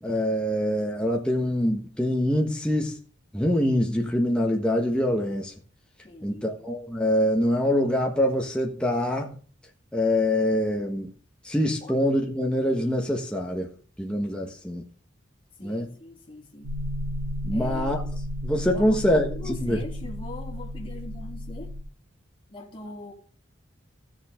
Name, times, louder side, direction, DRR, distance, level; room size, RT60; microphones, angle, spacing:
voice 1, 0.0-3.0 3.3-5.5 6.2-9.4 9.9-11.1 11.4-13.7 14.0-14.8 15.6-15.9 17.4-18.0 18.4-19.8, left 1 dB, 5° left, 1.4 m, -25 dB
voice 2, 6.0-6.6 11.8-11.9 15.6-16.7 17.5-18.1 18.7-21.7 22.5-23.1, left 1 dB, 25° left, 3.1 m, -41 dB
sound 1, 16.6-21.8, equal, 70° right, 3.9 m, -33 dB
16.0 x 7.3 x 3.8 m
head